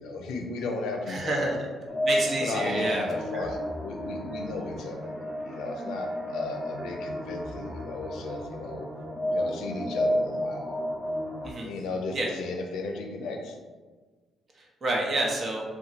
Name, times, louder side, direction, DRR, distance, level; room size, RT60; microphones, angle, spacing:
voice 1, 0.0-1.5 2.4-5.2 5.4-8.9 9.3-10.8 11.6-13.6, left 3 dB, 85° left, 3 dB, 0.4 m, -35 dB
voice 2, 1.1-1.6 2.0-3.0 3.3-3.5 11.4-11.7 12.1-12.3 14.6-15.6, right 2 dB, 40° right, -2 dB, 0.8 m, -29 dB
sound 1, 1.9-11.5, equal, 10° right, 0.7 m, -32 dB
2.7 x 2.2 x 4.0 m, 1.4 s
cardioid pair, 90°, 0 cm